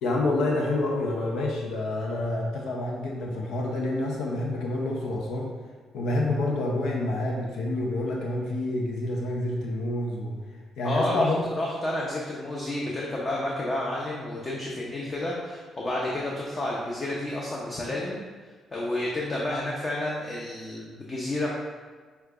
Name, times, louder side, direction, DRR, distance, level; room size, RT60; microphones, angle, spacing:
voice 1, 0.0-5.5 5.9-10.3 10.8-11.5, left 2 dB, 85° left, -1 dB, 0.5 m, -28 dB
voice 2, 10.8-18.2 18.7-21.5, left 1 dB, 35° left, -4 dB, 0.6 m, -30 dB
6.3 x 2.3 x 2.4 m, 1.5 s
cardioid pair, 90°, 0 cm